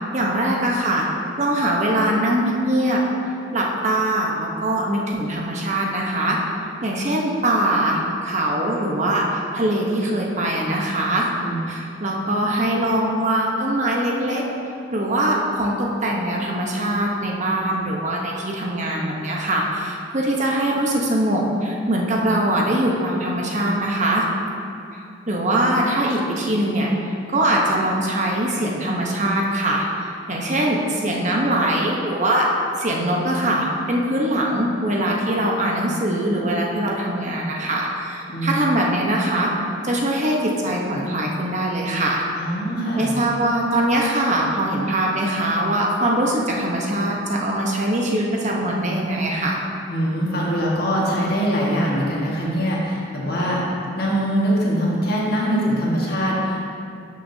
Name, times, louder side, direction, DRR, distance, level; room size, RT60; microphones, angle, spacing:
voice 1, 0.1-1.1 1.4-3.0 3.5-6.4 6.8-11.3 11.7-14.4 14.9-24.3 24.9-26.9 27.3-29.8 30.3-32.5 32.8-39.5 39.8-42.2 43.0-49.6, right 1 dB, 40° right, -2 dB, 1.0 m, -22 dB
voice 2, 42.4-43.1 49.9-53.7 53.9-56.7, equal, 55° left, -4 dB, 1.7 m, -22 dB
12.5 x 6.2 x 2.8 m, 2.5 s
head